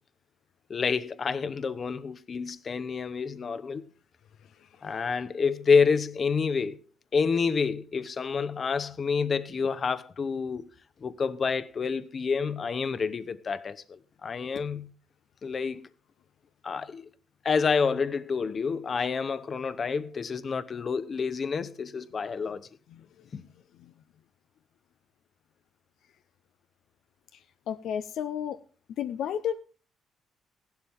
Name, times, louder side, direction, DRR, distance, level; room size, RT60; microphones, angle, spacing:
voice 1, 0.7-3.8 4.8-6.8 7.1-10.7 11.0-14.9 15.4-15.9 16.6-17.1 17.4-22.7 23.3-23.4, left 5 dB, 45° left, 0.9 m, -28 dB
voice 2, 4.6-5.0 22.9-23.1 23.8-23.9 27.7-28.6 29.0-29.6, left 9 dB, 75° left, 0.6 m, -33 dB
15.5 x 12.0 x 3.5 m
cardioid pair, 90°, 0 cm